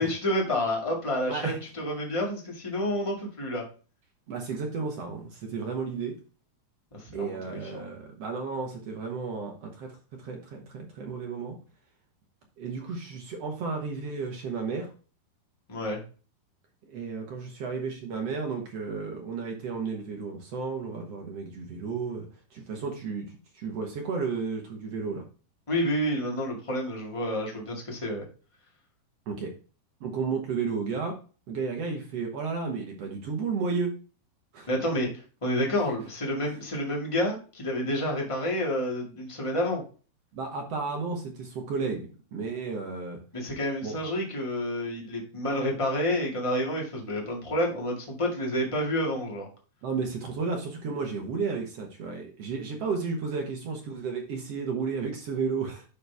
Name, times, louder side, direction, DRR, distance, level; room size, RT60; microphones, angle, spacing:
voice 1, 0.0-3.6 6.9-7.9 15.7-16.0 25.7-28.3 34.7-35.1 35.4-39.8 43.3-49.5, left 1 dB, 20° left, -1 dB, 0.8 m, -29 dB
voice 2, 4.3-6.2 7.1-11.6 12.6-14.9 16.8-25.2 29.3-29.5 30.0-31.2 31.5-34.0 34.5-34.7 40.3-42.1 42.3-43.2 43.8-44.0 49.8-55.8, right 5 dB, 65° right, 1 dB, 1.6 m, -33 dB
11.0 x 4.3 x 3.5 m, 0.36 s
omnidirectional pair, 4.6 m